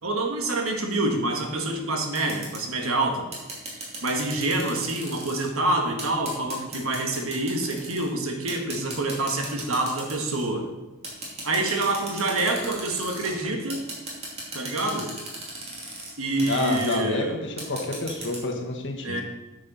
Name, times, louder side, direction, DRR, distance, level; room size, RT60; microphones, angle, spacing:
voice 1, 0.0-3.2 4.0-10.7 11.4-13.8 14.5-15.1 16.2-17.4 19.0-19.2, right 2 dB, 70° right, 3 dB, 1.6 m, -27 dB
sound 1, 2.2-2.6 3.3-5.5 6.0-8.1 8.5-10.5 11.0-13.4 13.7-16.1 16.4-17.0 17.6-18.4, right 2 dB, 30° right, 2.5 m, -37 dB
voice 2, 16.4-19.2, left 2 dB, 60° left, 3 dB, 1.2 m, -29 dB
9.0 x 6.5 x 5.6 m, 1.1 s
head